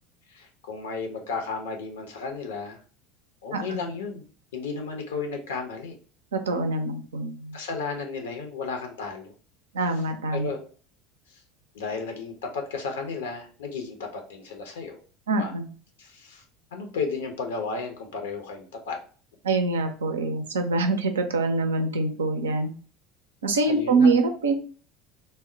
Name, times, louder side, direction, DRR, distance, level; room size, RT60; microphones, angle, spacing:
voice 1, 0.3-2.8 3.4-4.2 4.5-6.0 7.5-9.3 10.4-10.7 11.3-11.4 11.7-15.0 15.3-15.5 16.0-16.4 16.7-19.0 23.6-24.2, left 4 dB, 70° left, 3 dB, 0.6 m, -33 dB
voice 2, 6.3-7.6 9.7-10.5 15.3-15.7 19.4-22.7 23.4-24.5, right 3 dB, 75° right, 5 dB, 0.4 m, -24 dB
2.0 x 2.0 x 3.7 m, 0.40 s
figure-of-eight pair, 70°, 0 cm